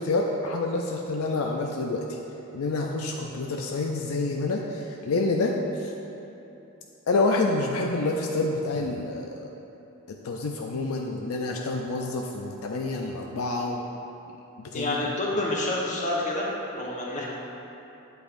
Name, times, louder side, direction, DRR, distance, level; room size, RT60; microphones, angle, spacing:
voice 1, 0.0-2.2 2.5-5.9 7.1-9.5 10.1-13.8 14.6-15.0 15.3-15.4, left 2 dB, 75° left, 1 dB, 0.5 m, -28 dB
voice 2, 14.7-16.5 16.8-17.3, left 2 dB, 35° left, -4 dB, 1.2 m, -28 dB
8.8 x 8.0 x 2.6 m, 3.0 s
head